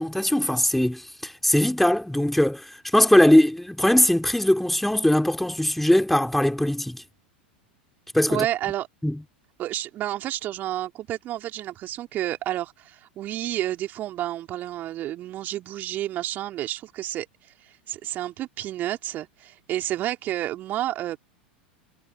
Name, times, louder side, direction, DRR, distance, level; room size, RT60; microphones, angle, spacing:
voice 1, 0.0-7.0 8.1-8.5 9.0-9.2, left 1 dB, ahead, 3.9 m, -20 dB
voice 2, 8.3-8.9 9.6-17.3 17.9-21.2, right 13 dB, 35° right, 4.3 m, -30 dB
figure-of-eight pair, 90°, 5 cm